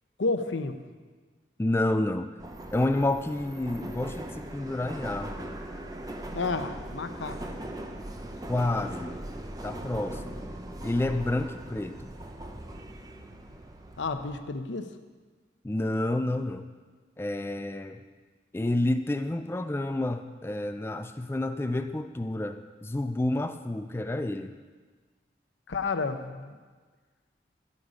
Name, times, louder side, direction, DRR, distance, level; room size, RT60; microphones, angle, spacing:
voice 1, 0.2-0.8 6.3-7.4 14.0-14.9 25.7-26.5, left 3 dB, 85° left, 9 dB, 0.8 m, -31 dB
voice 2, 1.6-2.3 2.7-5.6 8.5-9.2 9.6-10.4 10.8-12.1 15.6-16.6 17.2-18.0 18.5-24.5, left 1 dB, 15° left, 9 dB, 0.3 m, -29 dB
Subway metro underground, 2.4-14.4, right 1 dB, 20° right, 0.7 m, -40 dB
12.5 x 8.0 x 5.1 m, 1.4 s
head